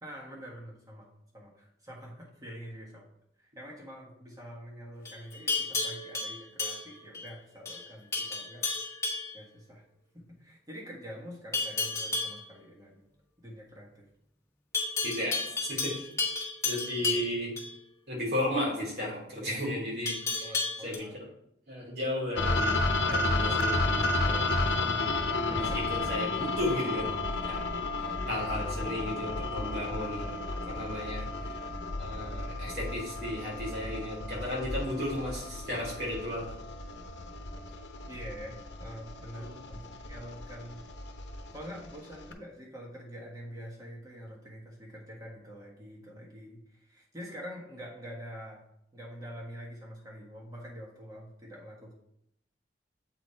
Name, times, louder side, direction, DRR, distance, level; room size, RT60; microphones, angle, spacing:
voice 1, 0.0-1.1 1.3-3.1 3.4-9.8 10.1-13.0 13.4-14.0 17.0-17.2 20.4-21.3 25.5-25.9 28.2-28.7 38.1-40.8 41.3-48.6 48.9-51.9, equal, 20° right, -2 dB, 1.5 m, -46 dB
Livestock farm animals working animals, 5.0-7.3 7.7-7.9 8.1-9.4 11.5-12.4 14.7-17.7 20.1-21.0, left 4 dB, 15° left, 1.3 m, -32 dB
voice 2, 15.0-16.0 16.6-17.5 18.1-20.5 20.8-21.2 21.7-24.8 25.5-27.2 27.4-31.5 32.0-36.6 39.3-39.6, left 1 dB, 65° right, -3 dB, 3.0 m, -34 dB
sound 1, 22.4-42.3, left 2 dB, 80° left, 0.8 m, -32 dB
7.9 x 4.1 x 4.5 m, 0.76 s
head